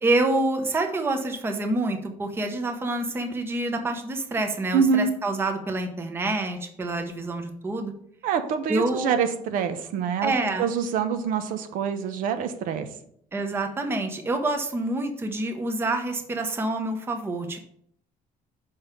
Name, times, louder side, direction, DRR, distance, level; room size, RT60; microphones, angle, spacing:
voice 1, 0.0-7.9 8.7-9.1 10.2-10.7 13.3-17.6, right 2 dB, 15° right, 5 dB, 0.8 m, -27 dB
voice 2, 4.7-5.1 8.2-10.3 10.6-12.9, right 6 dB, 70° right, 8 dB, 0.9 m, -25 dB
5.7 x 5.5 x 6.9 m, 0.66 s
cardioid pair, 175°, 14 cm